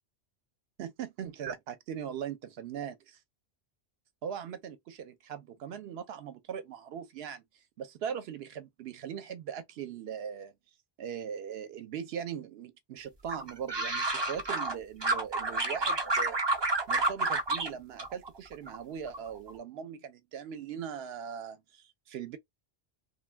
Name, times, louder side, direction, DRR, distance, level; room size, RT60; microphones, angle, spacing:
voice 1, 0.8-3.2 4.2-7.4 7.8-10.5 11.0-16.4 16.9-22.4, right 8 dB, 70° right, 0.8 m, -40 dB
sound 1, 13.3-14.7 15.0-17.7 18.0-18.8 19.1-19.5, right 2 dB, 35° right, 0.5 m, -30 dB
2.3 x 2.2 x 3.3 m
omnidirectional pair, 1.1 m